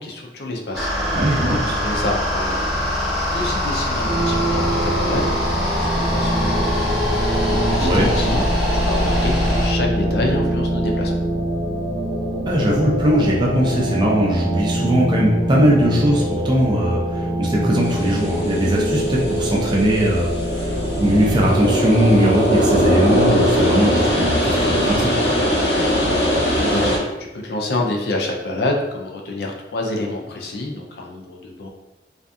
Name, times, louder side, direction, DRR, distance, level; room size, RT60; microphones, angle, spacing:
voice 1, 0.0-3.0 3.3-5.3 5.6-8.4 8.7-11.1 26.6-31.7, left 2 dB, 60° left, 1 dB, 0.4 m, -28 dB
sound 1, 0.7-9.7, left 1 dB, ahead, 0.9 m, -23 dB
voice 2, 1.1-1.8 7.8-8.1 12.5-25.4, right 1 dB, 25° right, -3 dB, 0.4 m, -20 dB
sound 2, 4.1-21.5, equal, 55° right, 0.8 m, -24 dB
sound 3, 17.8-27.0, equal, 85° left, 0.9 m, -20 dB
2.6 x 2.4 x 2.3 m, 1.0 s
head